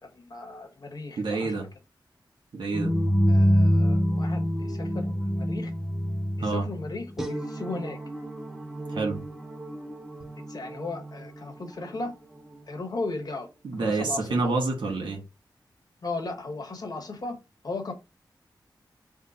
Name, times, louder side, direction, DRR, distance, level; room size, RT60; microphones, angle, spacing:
voice 1, 0.0-1.6 3.3-5.7 6.4-8.0 10.5-12.1 12.7-13.5 13.8-14.5 16.0-17.4 17.6-17.9, left 3 dB, 55° left, 1.1 m, -36 dB
voice 2, 1.2-1.7 2.5-2.9 6.4-6.6 8.9-9.2 13.6-15.2, right 3 dB, 85° right, 1.5 m, -27 dB
sound 1, 2.7-12.6, equal, 5° right, 0.6 m, -27 dB
3.7 x 2.1 x 4.1 m
wide cardioid pair, 120°, 8 cm